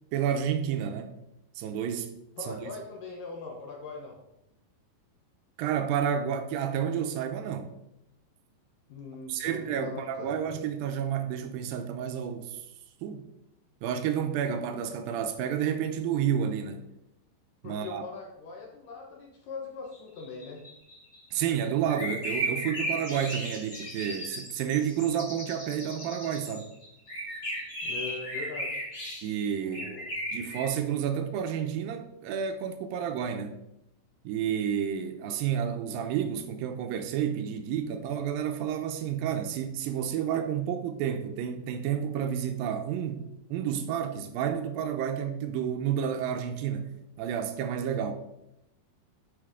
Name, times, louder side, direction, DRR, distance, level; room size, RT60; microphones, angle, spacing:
voice 1, 0.1-1.1 1.6-2.1 2.5-2.6 5.6-7.7 9.3-12.7 13.0-13.3 13.8-16.9 17.6-18.1 21.3-26.7 29.2-30.0 30.3-33.5 34.2-48.1, right 8 dB, 80° right, 2.2 m, -30 dB
voice 2, 2.4-4.2 8.9-10.3 17.6-20.6 27.8-28.8 29.6-30.1, left 4 dB, 70° left, 2.3 m, -41 dB
sound 1, 19.9-30.7, right 1 dB, 45° left, 0.9 m, -36 dB
10.0 x 5.4 x 3.6 m
omnidirectional pair, 4.5 m